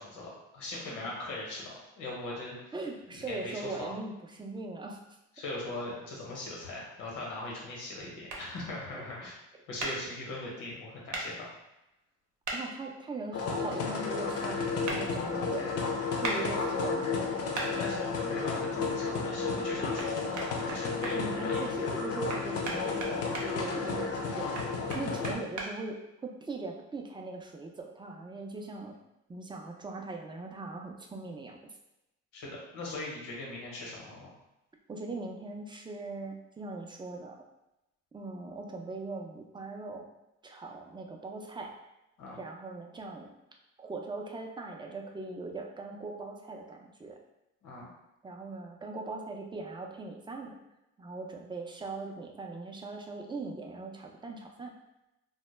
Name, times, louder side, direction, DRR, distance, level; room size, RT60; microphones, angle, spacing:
voice 1, 0.0-2.7 3.1-3.9 5.4-9.4 9.7-11.5 17.8-21.6 32.3-34.3 42.2-42.4 47.6-47.9, left 2 dB, 85° left, -3 dB, 0.9 m, -40 dB
voice 2, 2.7-5.0 8.9-9.1 12.5-17.4 21.2-29.0 29.3-31.7 34.9-37.4 38.1-40.1 40.4-41.7 42.3-43.3 43.8-47.2 48.2-50.5 51.0-54.7, right 3 dB, 15° right, 1 dB, 0.3 m, -40 dB
sound 1, 8.3-8.4 9.8-9.9 11.1-11.3 12.4-12.6 14.9-15.0 16.2-16.4 17.5-17.7 20.0-20.1 20.4-21.1 22.3-23.5 24.5-25.7, right 3 dB, 70° right, 0.7 m, -35 dB
sound 2, 13.3-25.3, left 4 dB, 55° left, 0.5 m, -32 dB
2.1 x 2.1 x 3.1 m, 0.92 s
cardioid pair, 90°, 30 cm